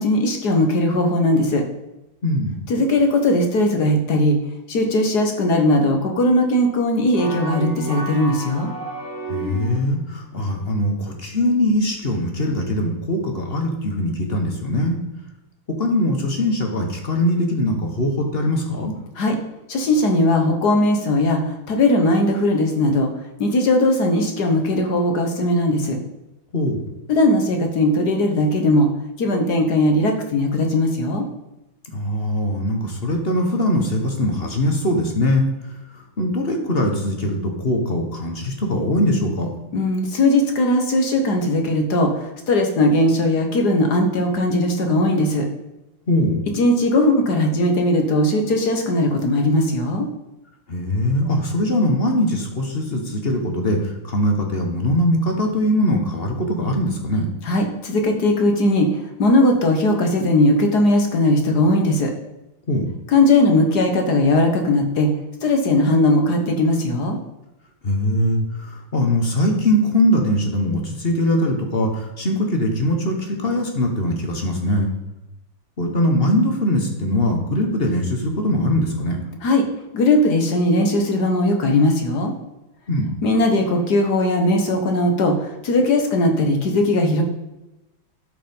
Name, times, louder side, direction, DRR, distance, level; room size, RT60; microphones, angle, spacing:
voice 1, 0.0-1.6 2.7-4.4 4.7-8.7 19.2-19.4 19.7-23.1 23.4-26.0 27.1-28.9 29.2-31.3 39.7-45.4 46.5-50.1 57.4-58.9 59.2-62.1 63.1-65.1 65.4-67.2 79.4-79.6 79.9-82.3 83.2-87.2, left 1 dB, 55° left, 4 dB, 1.6 m, -18 dB
voice 2, 2.2-2.6 9.3-15.0 15.8-18.9 26.5-26.9 31.9-35.5 36.2-39.5 46.1-46.4 50.7-57.2 62.7-62.9 67.8-74.9 75.8-79.2 82.9-83.1, left 1 dB, 30° left, 3 dB, 1.4 m, -21 dB
sound 1, 7.1-10.0, right 1 dB, 10° right, 1.9 m, -31 dB
12.5 x 5.2 x 5.4 m, 0.94 s
omnidirectional pair, 2.2 m